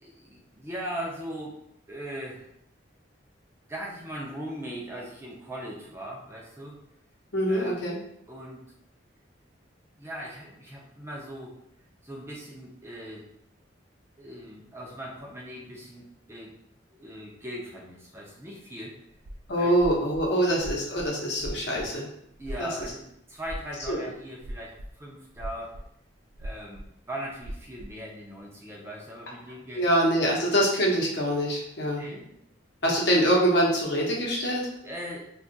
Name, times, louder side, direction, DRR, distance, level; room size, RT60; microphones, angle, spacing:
voice 1, 0.0-1.6 1.9-2.5 3.7-6.8 7.5-7.8 8.3-8.6 10.0-11.6 12.0-13.3 14.2-16.6 17.0-19.0 19.6-19.7 22.4-25.8 26.4-29.9 32.0-32.3 34.8-35.2, equal, 15° right, -2 dB, 0.4 m, -39 dB
voice 2, 7.3-8.0 19.5-22.1 22.6-22.7 23.9-24.1 29.8-32.0 32.8-34.7, equal, 60° left, -3 dB, 0.8 m, -24 dB
sound 1, 19.2-20.3 20.5-21.1 21.4-21.9 22.3-22.9 23.4-24.1 24.4-24.9 25.3-25.9 26.1-26.9 27.4-27.9, equal, 85° right, 0.5 m, -38 dB
2.6 x 2.4 x 3.8 m, 0.74 s
head